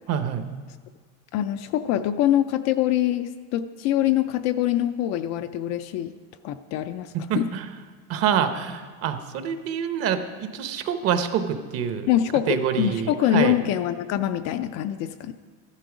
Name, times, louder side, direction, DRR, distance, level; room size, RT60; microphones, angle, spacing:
voice 1, 0.1-0.5 7.3-7.7 8.1-12.1 12.5-13.6, right 8 dB, 40° right, 9 dB, 0.8 m, -26 dB
voice 2, 1.3-6.1 6.4-7.5 12.1-15.3, left 12 dB, 45° left, 9 dB, 0.4 m, -24 dB
13.0 x 11.5 x 4.9 m, 1.5 s
cardioid pair, 160°, 39 cm